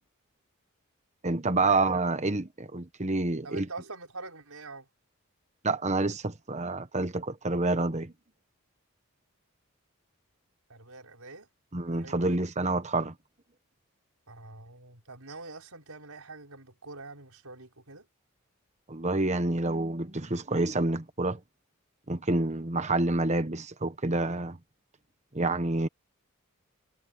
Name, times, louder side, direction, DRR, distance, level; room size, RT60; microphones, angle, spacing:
voice 1, 1.2-3.7 5.6-8.1 11.7-13.1 18.9-21.4 22.1-24.6 25.3-25.9, right 2 dB, 30° right, 1.2 m, -28 dB
voice 2, 3.4-4.9 10.7-11.5 11.8-12.4 14.3-18.1, right 3 dB, 80° right, 5.2 m, -45 dB
head